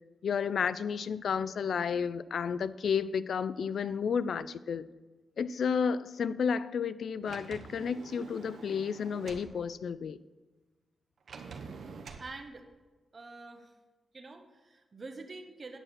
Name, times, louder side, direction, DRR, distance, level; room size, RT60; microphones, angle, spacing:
voice 1, 0.2-4.8 5.4-10.2, left 6 dB, 65° left, 16 dB, 0.3 m, -32 dB
Sliding door, 7.2-9.5 11.3-12.3, right 5 dB, 65° right, 0.8 m, -46 dB
voice 2, 12.2-12.6 13.1-13.7 14.1-15.8, right 3 dB, 30° right, 5 dB, 1.0 m, -46 dB
8.9 x 6.5 x 6.0 m, 1.2 s
wide cardioid pair, 140°, 0 cm